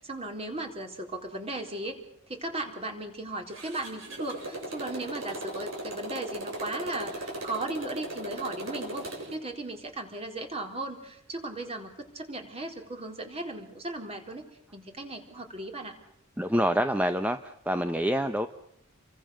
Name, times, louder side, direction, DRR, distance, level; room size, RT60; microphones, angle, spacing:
voice 1, 0.0-2.0 2.3-14.4 14.7-15.9, right 2 dB, 30° right, 4 dB, 4.1 m, -36 dB
Motorcycle, 3.5-9.4, right 1 dB, 65° right, 7.7 m, -38 dB
voice 2, 16.4-18.5, equal, 10° right, 8 dB, 0.9 m, -27 dB
29.0 x 24.0 x 6.6 m, 0.71 s
head